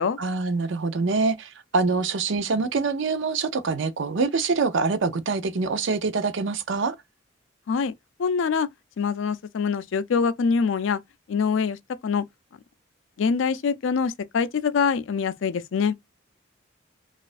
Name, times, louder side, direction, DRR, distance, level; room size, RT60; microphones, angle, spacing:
voice 1, 0.2-7.0, right 4 dB, 70° right, 0.5 m, -25 dB
voice 2, 8.2-8.7 9.0-11.0 11.3-12.2 13.2-15.9, left 5 dB, 75° left, 0.4 m, -24 dB
4.1 x 2.4 x 2.5 m
head